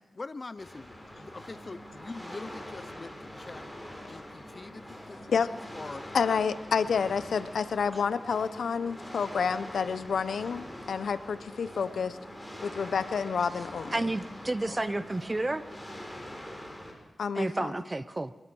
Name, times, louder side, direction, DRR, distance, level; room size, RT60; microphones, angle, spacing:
voice 1, 0.2-3.7 4.1-6.0 14.7-15.0, left 3 dB, 40° left, 0.7 m, -44 dB
sound 1, 0.6-16.9, equal, ahead, 7.0 m, -44 dB
voice 2, 6.1-12.2 12.6-14.1 17.2-17.7, left 6 dB, 80° left, 1.0 m, -29 dB
voice 3, 13.9-15.6 17.4-18.3, right 2 dB, 25° right, 1.0 m, -31 dB
23.5 x 21.0 x 6.4 m
cardioid pair, 75°, 0 cm